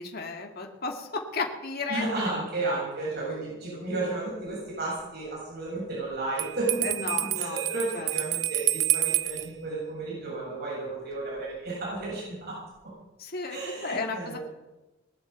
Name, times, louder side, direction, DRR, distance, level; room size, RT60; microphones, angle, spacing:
voice 1, 0.0-2.1 6.8-7.6 7.9-8.1 13.2-13.6 13.8-14.4, left 4 dB, 50° left, 3 dB, 2.2 m, -33 dB
voice 2, 1.9-7.0 7.4-12.9 13.5-14.4, right 2 dB, 55° right, -6 dB, 7.5 m, -33 dB
Bell, 6.4-9.5, right 14 dB, 70° right, 0.7 m, -28 dB
21.0 x 8.0 x 8.1 m, 1.0 s
head